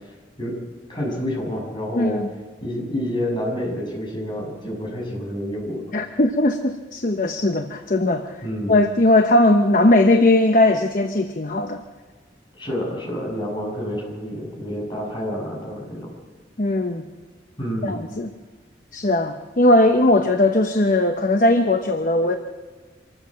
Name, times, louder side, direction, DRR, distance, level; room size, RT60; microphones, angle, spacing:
voice 1, 0.9-2.2 2.6-5.8 8.4-8.8 12.6-16.1 17.6-18.0, equal, 25° left, -2 dB, 6.9 m, -28 dB
voice 2, 1.9-2.3 5.9-8.4 8.7-11.8 16.6-17.1 17.8-18.3 18.9-22.4, left 1 dB, 45° left, 5 dB, 1.0 m, -18 dB
26.0 x 14.0 x 7.5 m, 1.4 s
head